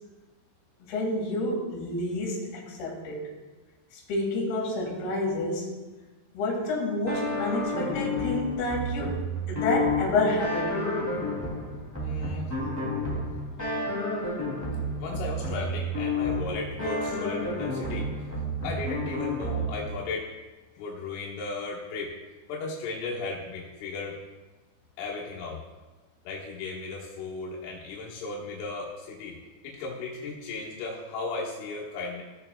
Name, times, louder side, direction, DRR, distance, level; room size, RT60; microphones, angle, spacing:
voice 1, 0.8-3.3 3.9-5.9 6.3-9.2 9.5-11.1, left 2 dB, 60° left, -4 dB, 3.6 m, -29 dB
sound 1, 7.1-20.0, left 1 dB, 10° left, 0.8 m, -31 dB
voice 2, 12.0-12.5 15.0-18.3 18.6-20.3 20.8-22.2 22.5-24.2 25.0-25.6 26.3-29.4 29.6-32.2, left 3 dB, 85° left, -4 dB, 3.8 m, -35 dB
16.5 x 6.6 x 2.3 m, 1.2 s
omnidirectional pair, 5.4 m